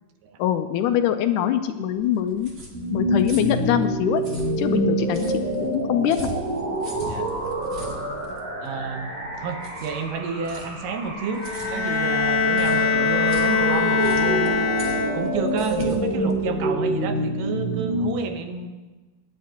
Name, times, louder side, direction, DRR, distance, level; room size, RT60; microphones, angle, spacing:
voice 1, 0.4-2.5 2.9-4.2 4.6-5.4 5.7-6.3, left 10 dB, 80° left, 8 dB, 2.0 m, -23 dB
sound 1, 2.0-17.2, right 1 dB, 35° right, 1.4 m, -41 dB
sound 2, 2.7-18.1, right 1 dB, 65° right, 4.1 m, -27 dB
voice 2, 8.6-14.7 15.1-18.7, right 5 dB, 80° right, 6 dB, 2.6 m, -30 dB
Bowed string instrument, 11.4-15.5, left 5 dB, 55° left, 2.7 m, -22 dB
25.5 x 10.5 x 2.9 m, 1.2 s
omnidirectional pair, 3.8 m